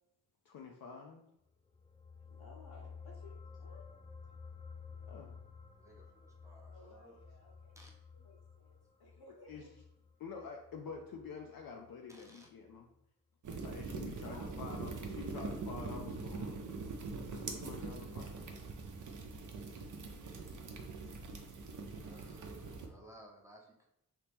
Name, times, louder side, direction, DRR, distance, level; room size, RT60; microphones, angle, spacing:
voice 1, 0.5-1.2 5.0-5.4 9.5-9.7 10.2-12.9 13.6-16.6 17.3-18.5, left 5 dB, 65° left, 1 dB, 0.5 m, -48 dB
sound 1, 1.6-12.3 12.6-12.8, left 5 dB, 15° left, 0.4 m, -53 dB
voice 2, 2.2-3.9 6.7-7.8 8.1-8.7 9.0-9.7 14.0-14.6 19.6-20.1, left 2 dB, 80° left, -2 dB, 1.2 m, -59 dB
voice 3, 5.8-7.2 7.8-7.9 12.1-12.5 22.0-23.9, equal, 10° right, -1 dB, 0.8 m, -58 dB
sound 2, 13.4-22.9, right 4 dB, 55° right, 0.7 m, -43 dB
2.9 x 2.9 x 3.5 m, 0.81 s
cardioid pair, 75°, 38 cm